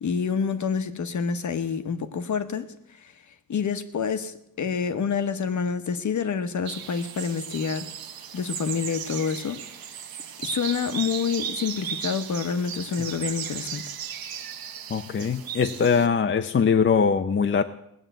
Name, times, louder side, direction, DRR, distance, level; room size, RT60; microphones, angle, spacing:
voice 1, 0.0-3.1 3.5-7.9 8.3-9.6 10.4-13.8, left 6 dB, 55° left, 10 dB, 1.1 m, -28 dB
sound 1, 6.7-16.1, right 8 dB, 85° right, 1.1 m, -36 dB
voice 2, 14.9-17.6, left 6 dB, 35° left, 7 dB, 0.6 m, -22 dB
18.0 x 7.3 x 9.2 m, 0.80 s
wide cardioid pair, 155°, 35 cm